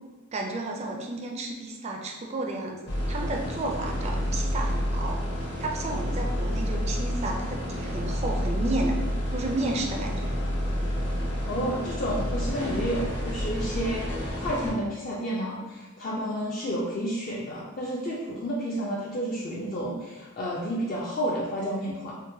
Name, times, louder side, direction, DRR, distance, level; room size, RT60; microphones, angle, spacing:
voice 1, 0.3-5.2 5.6-9.0 9.3-10.4, right 2 dB, 30° right, 1 dB, 0.4 m, -32 dB
sound 1, 2.8-14.7, equal, 55° left, 0.8 m, -29 dB
voice 2, 11.5-22.1, equal, 40° left, -5 dB, 0.3 m, -31 dB
3.8 x 2.1 x 2.6 m, 1.2 s
head